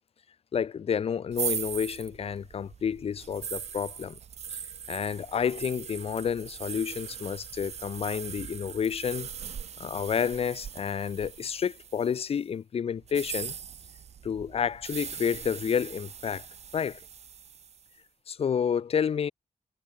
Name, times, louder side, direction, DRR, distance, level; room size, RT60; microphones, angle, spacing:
voice 1, 0.5-4.2 4.5-4.6 4.9-9.3 9.8-13.6 14.2-16.5 16.7-17.0 18.3-19.3, left 7 dB, 50° left, 1.1 m, -30 dB
sound 1, 1.3-12.3 13.0-17.9, right 8 dB, 55° right, 1.4 m, -40 dB
wide cardioid pair, 165°, 13 cm